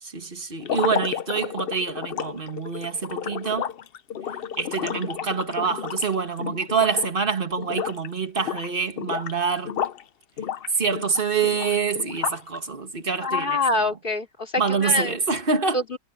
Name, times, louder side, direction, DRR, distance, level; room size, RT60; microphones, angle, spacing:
voice 1, 0.0-3.7 4.6-9.8 10.7-13.6 14.6-15.8, right 5 dB, 35° right, 2.0 m, -26 dB
sound 1, 0.6-7.3 7.6-8.1 8.4-10.0 10.4-12.6, left 8 dB, 60° left, 0.6 m, -31 dB
voice 2, 13.2-15.2 15.7-16.0, left 2 dB, 30° left, 2.9 m, -25 dB
omnidirectional pair, 1.7 m